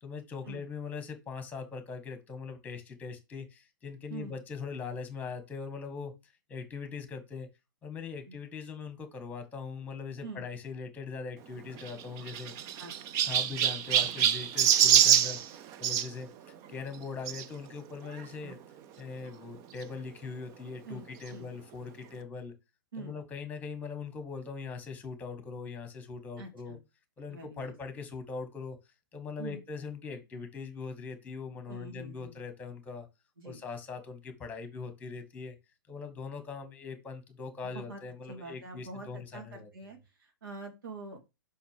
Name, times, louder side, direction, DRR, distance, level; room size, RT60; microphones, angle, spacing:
voice 1, 0.0-7.5 7.8-12.5 13.3-15.4 15.8-16.3 16.7-18.6 19.0-22.5 23.0-26.8 27.2-28.8 29.1-33.1 33.4-35.6 35.9-39.9, left 5 dB, 15° left, 8 dB, 1.9 m, -41 dB
Chirp tweet, 11.8-16.1 17.3-17.4 18.1-18.2 18.5-18.6 19.8-19.9, right 10 dB, 30° right, 0.6 m, -25 dB
voice 2, 20.8-21.5 22.9-23.2 26.4-26.8 27.3-27.7 29.4-29.6 31.7-32.4 33.4-33.6 37.6-38.0 38.3-41.2, right 2 dB, 75° right, 2 dB, 3.0 m, -45 dB
5.7 x 5.3 x 5.2 m, 0.25 s
hypercardioid pair, 125°, 11 cm